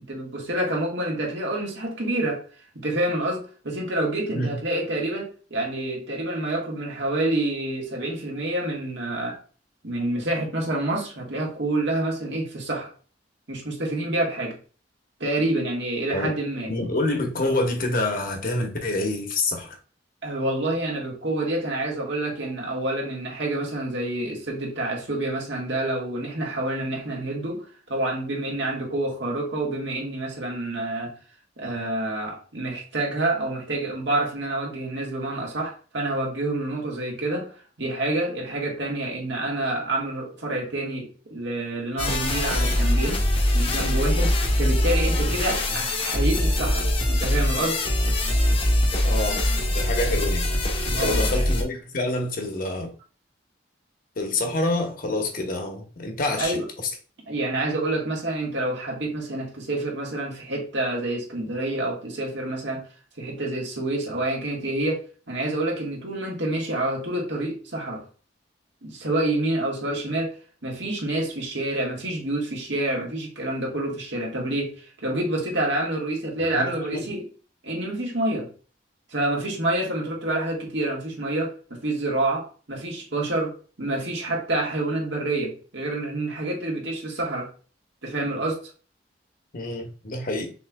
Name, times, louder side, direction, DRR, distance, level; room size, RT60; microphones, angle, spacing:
voice 1, 0.1-2.4 2.7-9.4 9.8-12.9 13.5-14.6 15.2-16.7 20.2-31.1 31.6-43.3 43.5-47.8 50.9-51.5 56.4-56.7 57.3-62.8 63.2-68.0 68.8-70.4 70.6-77.3 77.6-78.5 79.1-87.5 88.0-88.7, right 1 dB, 90° right, 1.6 m, -28 dB
voice 2, 16.7-19.8 49.0-49.4 49.7-50.4 50.9-52.9 54.2-56.6 76.5-77.1 89.5-90.5, left 2 dB, 55° left, 1.0 m, -27 dB
sound 1, 42.0-51.6, left 1 dB, 30° left, 0.8 m, -23 dB
6.2 x 3.0 x 2.3 m
head